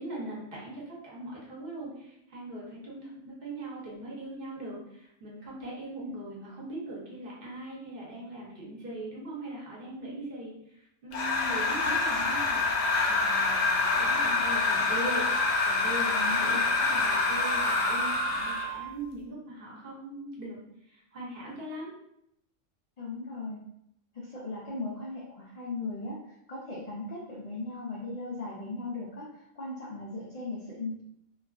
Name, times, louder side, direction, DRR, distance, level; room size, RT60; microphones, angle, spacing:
voice 1, 0.0-21.9, right 1 dB, 50° right, -5 dB, 0.9 m, -40 dB
sound 1, 11.1-18.8, left 3 dB, 85° left, 1.0 m, -26 dB
Wind instrument woodwind instrument, 15.2-19.0, right 7 dB, 30° right, 0.6 m, -39 dB
voice 2, 16.1-16.6 23.0-23.6 24.1-26.2 26.5-31.0, left 3 dB, 70° left, -5 dB, 0.3 m, -38 dB
2.3 x 2.3 x 2.3 m, 0.76 s
omnidirectional pair, 1.3 m